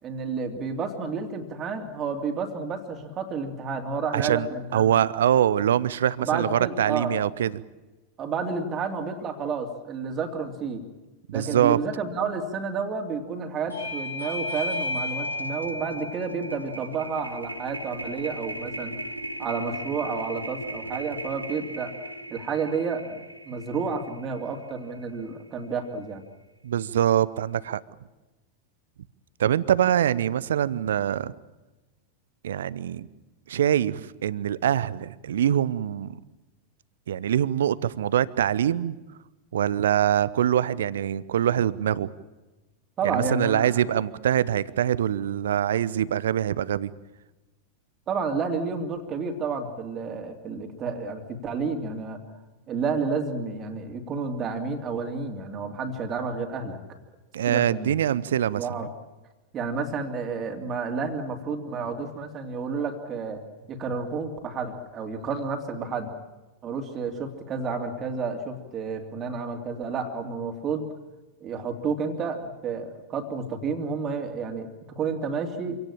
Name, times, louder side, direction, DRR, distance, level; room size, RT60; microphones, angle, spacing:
voice 1, 0.0-5.0 6.2-7.2 8.2-10.8 11.3-19.0 19.4-22.0 22.3-26.2 43.0-43.8 48.1-52.2 52.7-56.8 57.5-58.0 58.5-58.9 59.5-63.4 63.7-66.1 66.6-70.9 71.4-75.8, right 5 dB, 30° right, 4 dB, 2.8 m, -30 dB
voice 2, 4.1-7.6 11.3-11.8 26.6-27.8 29.4-31.3 32.4-33.1 33.5-36.2 37.1-39.0 39.5-42.1 43.0-46.9 57.3-58.6, right 10 dB, 60° right, 19 dB, 0.7 m, -24 dB
Bell / Doorbell, 13.7-18.9, left 2 dB, 80° left, 7.4 m, -35 dB
sound 1, 14.7-14.9 15.2-25.4, right 1 dB, 85° right, 1.3 m, -38 dB
26.0 x 17.5 x 8.9 m, 1.1 s
figure-of-eight pair, 90°, 0 cm